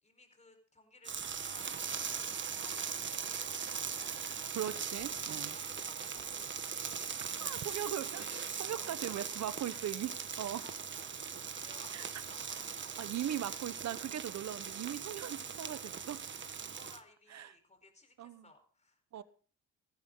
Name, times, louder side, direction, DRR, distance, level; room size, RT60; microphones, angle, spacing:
voice 1, 0.0-4.1 5.1-9.8 10.4-12.9 13.2-13.4 15.6-15.8 16.7-19.2, left 2 dB, 20° left, 4.7 m, -60 dB
sound 1, 1.0-17.0, right 6 dB, 40° right, 1.5 m, -40 dB
voice 2, 4.5-5.5 7.4-10.6 11.9-12.0 13.0-15.8 16.1-16.2 17.3-17.6 18.2-18.5 19.1-19.2, right 11 dB, 60° right, 1.3 m, -39 dB
17.5 x 14.5 x 4.0 m
cardioid pair, 90°, 30 cm